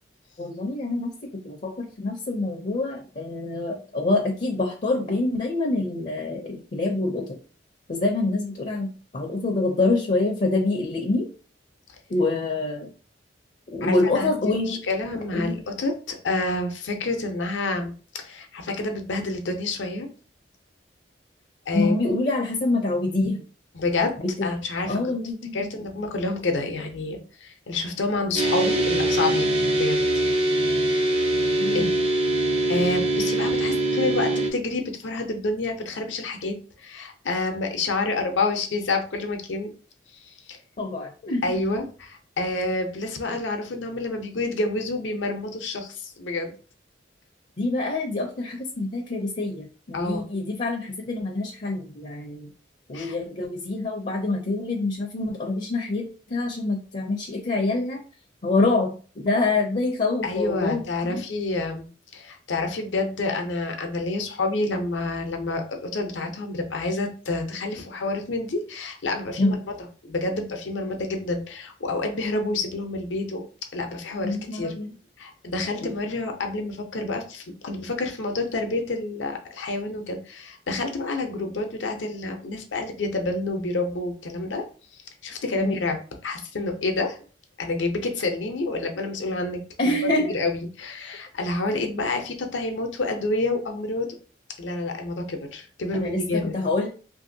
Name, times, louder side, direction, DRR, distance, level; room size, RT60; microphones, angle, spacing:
voice 1, 0.4-7.4 7.9-11.3 12.1-12.9 13.7-14.8 15.3-15.6 21.7-23.4 24.2-24.5 24.9-25.7 31.6-31.9 40.8-41.4 47.6-52.5 52.9-58.0 58.4-61.2 69.4-69.6 74.2-74.9 75.8-75.9 85.6-85.8 89.8-90.3 95.9-96.9, left 2 dB, 40° left, 1 dB, 0.5 m, -26 dB
voice 2, 13.8-20.1 21.7-21.9 23.7-24.1 24.4-25.0 25.5-30.0 31.7-31.9 32.7-39.7 40.2-40.6 41.4-46.6 49.9-50.3 52.9-53.2 60.2-69.6 70.0-73.4 73.7-74.8 75.2-84.6 84.9-87.2 87.6-89.6 90.3-94.1 94.6-96.6, left 2 dB, 90° left, 4 dB, 0.7 m, -28 dB
sound 1, 28.4-34.5, right 1 dB, 35° right, 0.5 m, -23 dB
2.9 x 2.7 x 2.6 m, 0.39 s
head